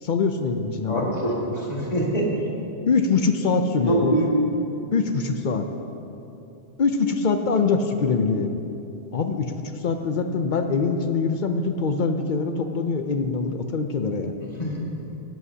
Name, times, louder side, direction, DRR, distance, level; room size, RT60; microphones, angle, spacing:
voice 1, 0.0-1.2 2.9-4.2 4.9-5.7 6.8-8.6 9.1-9.5 9.8-14.3, left 4 dB, 55° left, 7 dB, 0.6 m, -23 dB
voice 2, 0.9-2.4 3.9-4.3 14.4-15.2, right 1 dB, 35° left, -4 dB, 2.0 m, -25 dB
16.0 x 10.5 x 2.8 m, 2.9 s
omnidirectional pair, 1.2 m